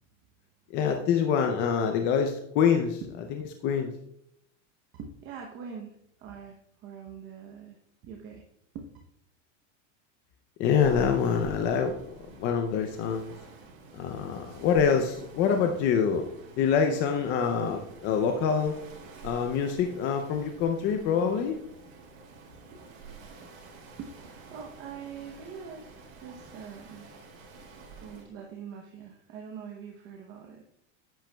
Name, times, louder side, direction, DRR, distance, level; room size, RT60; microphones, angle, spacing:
voice 1, 0.7-3.0 3.3-3.9 10.6-12.0 12.4-13.3 13.9-16.2 16.6-18.8 19.2-21.6, left 7 dB, 30° left, 5 dB, 0.5 m, -25 dB
voice 2, 5.0-7.8 8.0-8.4 8.7-8.8 24.0-27.1 28.0-30.6, right 6 dB, 30° right, 1 dB, 0.8 m, -43 dB
sound 1, 10.8-28.3, right 5 dB, 65° right, 3.6 m, -48 dB
10.0 x 9.0 x 2.2 m, 0.74 s
supercardioid pair, 165°, 38 cm